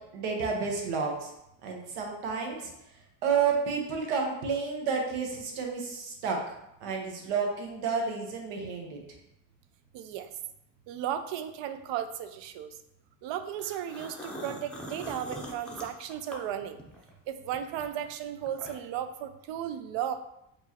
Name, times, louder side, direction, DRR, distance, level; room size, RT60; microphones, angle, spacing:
voice 1, 0.1-1.3 1.6-2.7 3.2-6.4 6.8-9.0, right 5 dB, 85° right, 1 dB, 1.1 m, -30 dB
voice 2, 9.9-10.3 10.9-12.7 13.2-16.8 17.3-20.1, right 10 dB, 65° right, 10 dB, 0.5 m, -35 dB
sound 1, 13.6-17.1 17.5-19.0, equal, ahead, 0.5 m, -42 dB
4.5 x 3.0 x 2.9 m, 0.81 s
cardioid pair, 110°, 49 cm